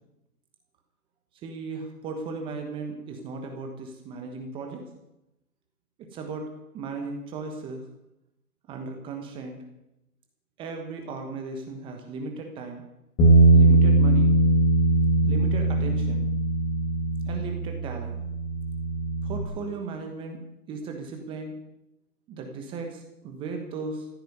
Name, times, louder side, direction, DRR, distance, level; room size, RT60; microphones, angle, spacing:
voice 1, 1.4-4.8 6.1-7.8 8.7-9.6 10.6-12.8 13.5-14.4 15.2-16.3 17.3-18.2 19.2-20.4 20.7-21.6 22.3-24.1, right 4 dB, 10° right, 4 dB, 1.2 m, -36 dB
Bass guitar, 13.2-19.4, right 2 dB, 10° left, 1.8 m, -20 dB
16.0 x 9.2 x 9.3 m, 0.88 s
hypercardioid pair, 150°, 46 cm